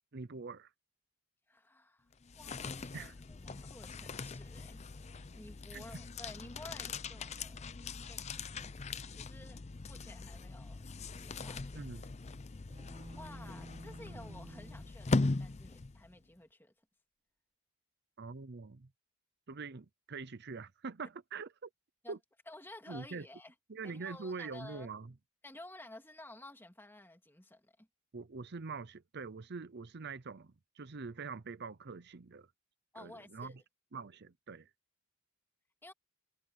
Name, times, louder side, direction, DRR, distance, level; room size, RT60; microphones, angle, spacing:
voice 1, 0.1-0.7 2.9-3.1 5.7-5.8 11.7-12.0 14.1-14.2 18.2-18.9 19.5-21.7 22.1-22.2 22.9-23.2 23.7-25.1 28.1-32.5 33.0-33.5 33.9-34.7, right 4 dB, 50° right, 0.7 m, -44 dB
voice 2, 1.5-2.1 2.3-4.8 5.3-7.8 8.0-10.9 11.2-11.9 13.1-16.7 22.0-22.2 22.5-23.5 23.8-24.9 25.4-27.9 32.9-33.6 35.8-35.9, left 1 dB, 10° left, 2.3 m, -53 dB
sound 1, 2.1-16.2, left 3 dB, 30° left, 0.5 m, -40 dB
sound 2, 12.7-15.0, right 1 dB, 25° right, 1.3 m, -51 dB
head